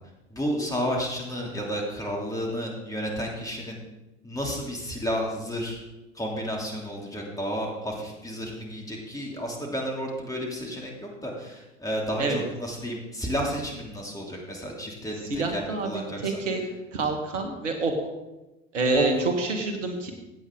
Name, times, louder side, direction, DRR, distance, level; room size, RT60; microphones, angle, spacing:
voice 1, 0.3-3.8 4.2-5.8 6.1-16.7 18.9-19.1, equal, 10° left, -1 dB, 2.9 m, -31 dB
voice 2, 15.3-16.6 16.9-17.9 18.7-19.1 19.4-20.1, right 3 dB, 75° right, 3 dB, 1.9 m, -27 dB
16.0 x 8.5 x 3.8 m, 1.0 s
figure-of-eight pair, 75°, 37 cm